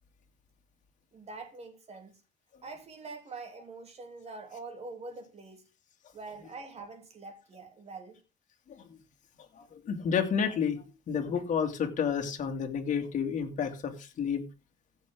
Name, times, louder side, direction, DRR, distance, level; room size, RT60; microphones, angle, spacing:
voice 1, 1.1-2.2 2.6-5.7 6.1-8.2, right 3 dB, 40° right, 3.2 m, -44 dB
voice 2, 9.5-14.4, left 7 dB, 50° left, 2.4 m, -30 dB
15.5 x 6.5 x 3.8 m
cardioid pair, 110°, 17 cm